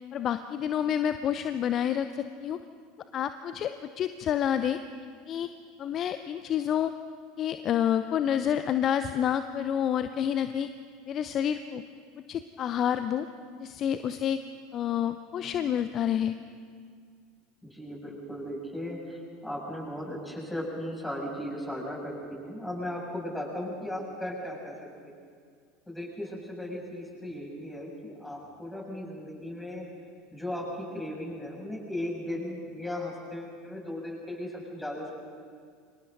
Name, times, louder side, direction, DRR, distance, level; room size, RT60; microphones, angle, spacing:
voice 1, 0.1-2.6 3.1-4.8 5.3-5.5 5.8-6.9 7.4-10.7 11.1-11.8 12.3-13.3 13.6-14.4 14.7-16.4, left 9 dB, 40° left, 10 dB, 0.7 m, -28 dB
voice 2, 17.6-24.7 25.0-25.1 25.9-29.9 30.3-35.1, left 1 dB, 10° left, -3 dB, 7.4 m, -36 dB
30.0 x 24.5 x 4.0 m, 2.1 s
figure-of-eight pair, 75°, 0 cm